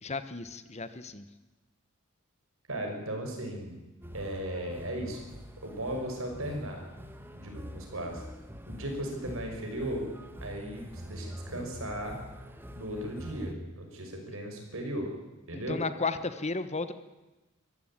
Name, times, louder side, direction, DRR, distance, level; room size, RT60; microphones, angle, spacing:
voice 1, 0.0-1.3 14.3-14.4 15.5-16.9, left 4 dB, 30° left, 12 dB, 1.1 m, -34 dB
voice 2, 2.7-3.8 4.1-5.2 5.6-6.8 7.3-8.2 8.7-10.1 10.4-12.2 12.8-15.1 15.5-15.8, right 1 dB, 65° right, 3 dB, 6.0 m, -36 dB
sound 1, 4.0-13.5, equal, 10° right, 1.7 m, -45 dB
24.0 x 15.0 x 8.9 m, 1.1 s
head